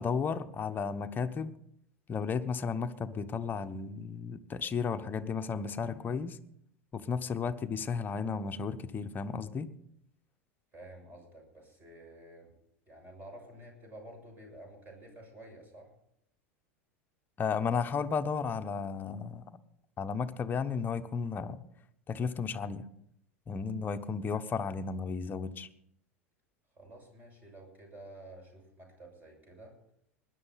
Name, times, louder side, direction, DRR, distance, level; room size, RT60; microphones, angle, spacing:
voice 1, 0.0-1.5 2.1-6.4 6.9-9.7 17.4-19.5 20.0-21.6 22.1-22.8 23.5-25.7, left 5 dB, 25° left, 8 dB, 1.0 m, -33 dB
voice 2, 10.7-12.5 12.9-15.9 26.8-29.8, right 1 dB, 25° right, 3 dB, 6.8 m, -51 dB
20.5 x 11.0 x 4.2 m, 0.72 s
hypercardioid pair, 85°, 7 cm